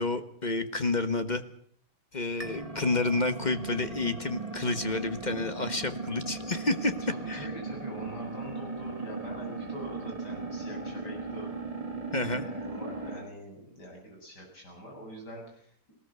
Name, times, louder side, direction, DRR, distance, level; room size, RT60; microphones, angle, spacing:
voice 1, 0.0-1.4 2.1-7.0 7.3-7.5 12.1-12.5, left 2 dB, 25° left, 10 dB, 1.1 m, -29 dB
sound 1, 2.4-13.3, right 3 dB, 20° right, 2.6 m, -37 dB
voice 2, 7.1-11.5 12.3-15.9, equal, 55° left, 0 dB, 8.6 m, -44 dB
20.0 x 18.5 x 8.2 m, 0.62 s
omnidirectional pair, 2.1 m